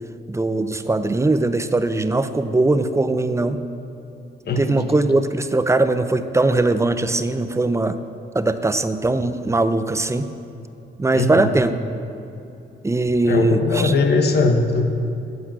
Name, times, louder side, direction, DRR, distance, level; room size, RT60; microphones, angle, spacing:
voice 1, 0.3-3.6 4.6-8.0 8.3-10.3 11.0-11.7 12.8-13.9, right 2 dB, 15° right, 10 dB, 0.6 m, -20 dB
voice 2, 4.4-4.8 11.1-11.5 13.3-14.8, left 3 dB, 55° left, 5 dB, 1.3 m, -19 dB
9.6 x 8.2 x 7.6 m, 2.7 s
cardioid pair, 90°, 20 cm